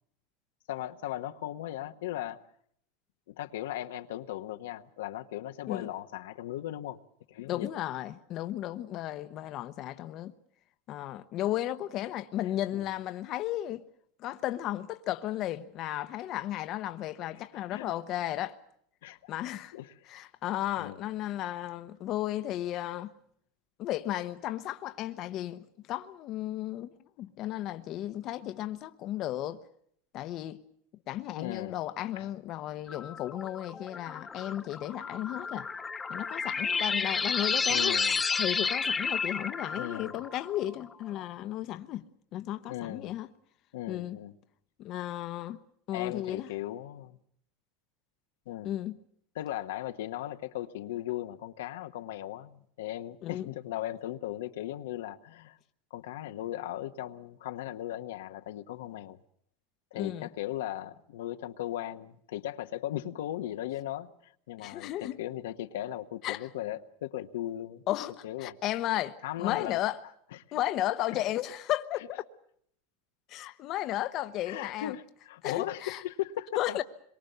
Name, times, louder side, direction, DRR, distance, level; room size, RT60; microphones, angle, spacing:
voice 1, 0.7-2.4 3.3-7.0 7.3-7.7 12.7-12.9 17.7-17.9 19.0-19.3 19.7-20.0 20.8-21.0 31.4-31.8 32.2-32.3 37.7-38.2 39.8-40.2 42.7-43.1 43.7-44.4 45.9-47.2 48.5-48.7 49.3-55.6 55.9-59.2 59.9-67.8 68.2-68.6 69.2-69.8 70.3-70.4 71.1-71.2 74.5-76.8, left 13 dB, 85° left, 1.1 m, -37 dB
voice 2, 7.5-10.3 10.9-13.8 14.2-18.5 19.1-19.7 20.1-23.1 23.8-26.9 27.2-29.6 30.1-30.6 31.1-35.7 36.1-38.0 38.4-42.1 42.3-43.3 43.9-44.2 44.8-45.6 45.9-46.5 48.6-49.0 53.2-53.5 59.9-60.3 64.6-65.2 66.2-66.5 67.9-70.0 70.5-72.2 73.3-74.9 75.4-76.0 76.6-76.8, left 13 dB, 45° left, 0.9 m, -34 dB
sound 1, 32.9-41.0, left 5 dB, 15° left, 1.0 m, -32 dB
25.5 x 23.0 x 6.8 m
supercardioid pair, 135°, 0 cm